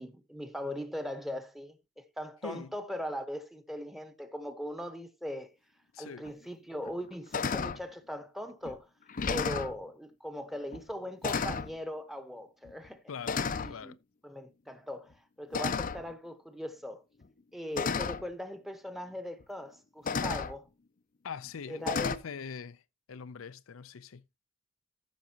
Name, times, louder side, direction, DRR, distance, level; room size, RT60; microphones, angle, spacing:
voice 1, 0.0-5.5 6.0-8.9 9.3-13.0 13.5-14.0 14.2-17.0 17.5-20.7 21.7-22.2, equal, ahead, 1.1 m, -40 dB
voice 2, 5.9-6.2 13.1-14.0 21.2-22.8 23.1-24.2, left 6 dB, 80° left, 0.5 m, -42 dB
sound 1, 6.2-6.3 6.8-7.1 7.3-7.8 8.6-8.8 9.1-9.8 10.7-10.9 11.2-11.7 12.7-12.9 13.3-13.7 15.5-16.1 17.2-17.3 17.8-18.2 19.4-19.5 20.1-20.5 21.9-22.2, left 5 dB, 45° left, 0.6 m, -32 dB
14.5 x 6.2 x 2.9 m
head